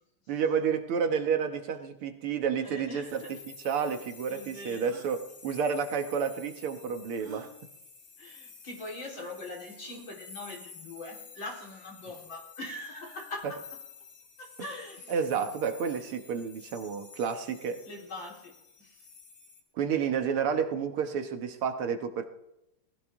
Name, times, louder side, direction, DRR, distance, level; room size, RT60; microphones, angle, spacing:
voice 1, 0.3-3.4 3.6-7.5 15.1-17.8 19.8-22.3, right 6 dB, 85° right, 7 dB, 2.2 m, -30 dB
voice 2, 2.6-3.3 3.7-3.9 4.3-4.9 8.2-13.6 14.4-15.1 17.9-18.5 18.8-19.0, left 2 dB, 60° left, -2 dB, 4.8 m, -42 dB
sound 1, 3.0-19.6, left 4 dB, 90° left, 3.2 m, -51 dB
sound 2, 4.8-5.1 7.2-7.5 9.1-9.3 9.8-10.1 11.9-12.3, right 5 dB, 60° right, 3.5 m, -49 dB
19.0 x 15.5 x 3.7 m, 0.86 s
omnidirectional pair, 2.4 m